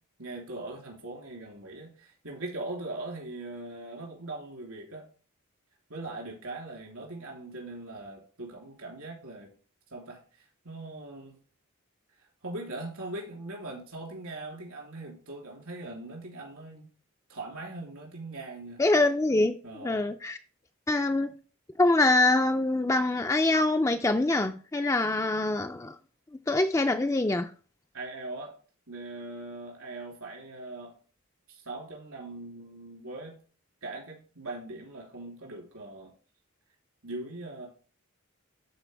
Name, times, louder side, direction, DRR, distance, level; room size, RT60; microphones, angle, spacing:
voice 1, 0.2-5.1 5.9-9.5 9.9-11.4 12.2-16.9 17.3-18.8 19.6-20.1 27.9-28.6 28.9-30.9 31.5-33.4 33.8-36.1 37.0-37.7, right 2 dB, 75° right, 3.3 m, -40 dB
voice 2, 18.8-20.4 20.9-21.3 21.8-26.0 26.5-27.5, left 2 dB, 15° left, 0.4 m, -24 dB
12.0 x 4.5 x 3.4 m
head